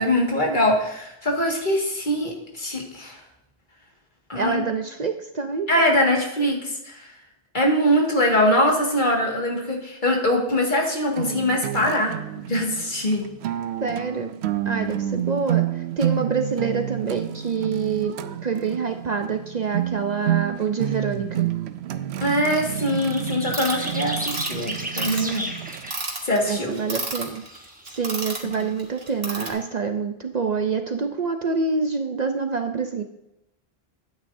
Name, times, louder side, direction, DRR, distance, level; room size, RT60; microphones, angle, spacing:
voice 1, 0.0-3.2 4.3-4.6 5.7-7.0 7.5-12.2 12.5-13.3 22.2-25.5 26.2-26.8 28.4-28.7, left 1 dB, 50° left, 0 dB, 2.0 m, -22 dB
voice 2, 4.4-5.7 13.8-14.3 14.7-18.2 18.4-21.5 26.5-27.4 27.9-33.0, right 5 dB, 50° right, 5 dB, 0.7 m, -26 dB
sound 1, 11.2-25.9, right 11 dB, 85° right, 0.8 m, -29 dB
sound 2, 22.2-27.0 27.3-28.1, right 1 dB, 10° right, 1.0 m, -34 dB
sound 3, 23.5-29.5, right 3 dB, 65° right, 1.9 m, -31 dB
12.0 x 9.1 x 2.6 m, 0.86 s
omnidirectional pair, 1.1 m